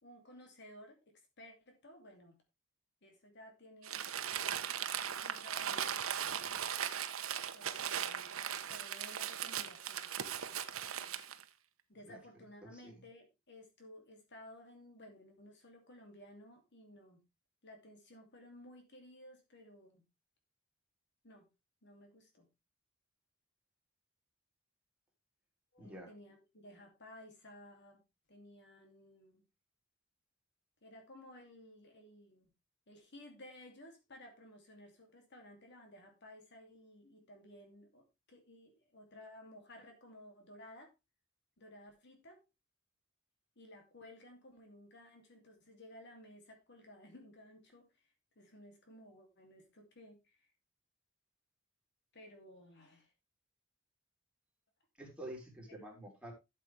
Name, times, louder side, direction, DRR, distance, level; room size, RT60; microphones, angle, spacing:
voice 1, 0.0-1.0 1.4-2.4 3.0-4.0 5.2-6.0 7.5-10.1 11.9-17.2 17.6-20.0 21.2-21.5 21.8-22.5 25.7-28.0 28.3-29.5 30.8-32.5 32.9-40.9 41.6-42.4 43.6-50.5 52.1-53.1 55.7-55.8, left 1 dB, 55° left, 3 dB, 2.6 m, -56 dB
Crumpling crinkling, 3.8-11.4, right 9 dB, 90° right, 1.0 m, -38 dB
voice 2, 12.6-12.9 25.8-26.1 55.0-56.3, right 1 dB, 5° right, -2 dB, 4.0 m, -48 dB
12.5 x 7.5 x 3.3 m, 0.23 s
head